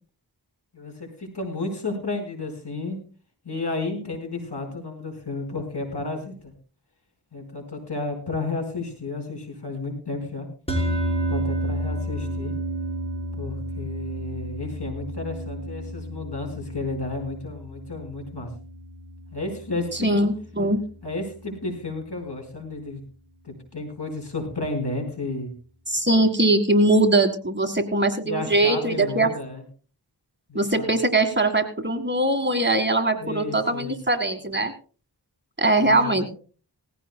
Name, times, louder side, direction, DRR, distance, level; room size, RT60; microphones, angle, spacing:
voice 1, 0.7-3.0 3.4-6.5 7.3-10.5 11.3-12.5 13.4-18.5 19.3-20.2 21.0-23.0 23.4-25.5 28.2-29.6 30.5-30.9 33.2-33.9 35.8-36.3, left 3 dB, 70° left, 4 dB, 4.9 m, -32 dB
sound 1, 10.7-21.1, equal, 15° left, 4.1 m, -31 dB
voice 2, 20.0-20.8 25.9-29.3 30.6-34.7 35.6-36.3, right 2 dB, 25° right, 6 dB, 1.8 m, -21 dB
19.0 x 15.0 x 2.2 m, 0.37 s
wide cardioid pair, 65°, 41 cm